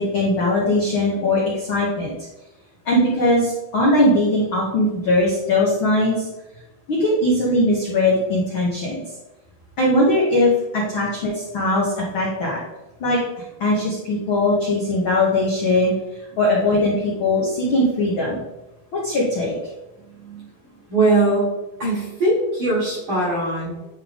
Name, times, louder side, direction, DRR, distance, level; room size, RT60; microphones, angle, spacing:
voice 1, 0.0-2.1 2.8-6.3 6.9-9.0 9.8-12.6 13.0-13.2 13.6-15.9 16.4-18.4 18.9-19.5, left 1 dB, 70° left, -4 dB, 1.2 m, -20 dB
voice 2, 20.0-20.5 20.9-21.5 21.8-23.9, right 2 dB, 50° right, -5 dB, 1.7 m, -21 dB
10.0 x 3.6 x 3.5 m, 0.98 s
omnidirectional pair, 4.1 m